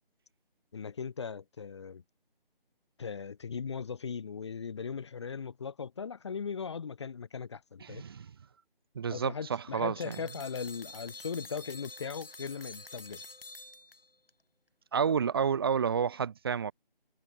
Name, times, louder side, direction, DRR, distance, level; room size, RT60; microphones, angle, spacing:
voice 1, 0.7-2.0 3.0-8.0 9.1-13.2, left 6 dB, 30° left, 2.2 m, -38 dB
voice 2, 7.8-8.3 9.0-10.2 14.9-16.7, right 7 dB, 25° right, 2.2 m, -30 dB
sound 1, 10.0-14.3, left 2 dB, 70° left, 5.9 m, -48 dB
figure-of-eight pair, 160°, 29 cm